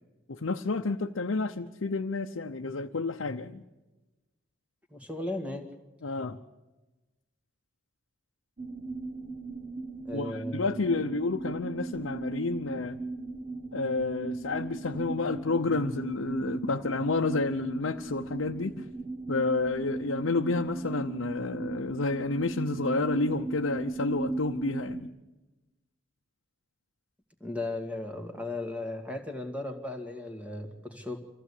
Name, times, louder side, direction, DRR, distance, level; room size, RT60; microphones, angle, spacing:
voice 1, 0.3-3.6 6.0-6.4 10.1-13.0 13.7-18.8 19.3-25.1, left 3 dB, 90° left, 3 dB, 0.8 m, -30 dB
voice 2, 4.9-5.7 10.0-10.6 27.4-31.2, left 2 dB, 5° right, 4 dB, 2.1 m, -36 dB
sound 1, 8.6-25.0, right 3 dB, 40° right, 1.2 m, -37 dB
25.5 x 15.0 x 8.5 m, 1.1 s
head